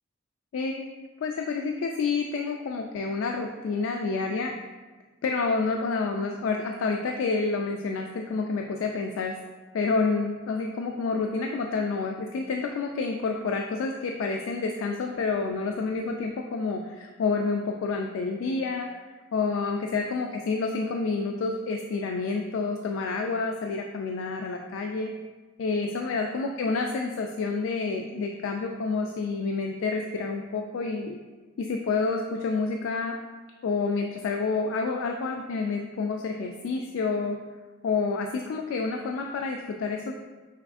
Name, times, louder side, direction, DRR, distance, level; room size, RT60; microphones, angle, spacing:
voice 1, 0.5-4.5 5.2-9.3 9.7-18.9 19.3-25.1 25.6-31.2 31.6-33.2 33.6-37.4 37.8-40.1, left 4 dB, 75° left, 3 dB, 0.3 m, -29 dB
5.7 x 3.3 x 2.5 m, 1.3 s
head